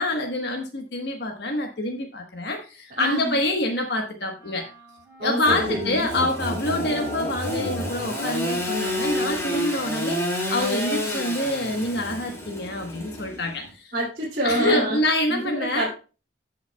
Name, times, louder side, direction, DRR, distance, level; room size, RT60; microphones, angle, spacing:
voice 1, 0.0-4.6 5.2-13.9 14.4-15.9, left 1 dB, 60° left, 2 dB, 1.2 m, -26 dB
voice 2, 3.0-3.4 5.2-6.1 13.9-15.0 15.3-15.9, right 1 dB, 50° right, -6 dB, 2.5 m, -27 dB
sound 1, 4.4-10.1, equal, 20° right, 3.6 m, -45 dB
Engine / Sawing, 5.4-13.7, equal, 15° left, 2.0 m, -29 dB
16.5 x 5.7 x 2.2 m, 0.33 s
head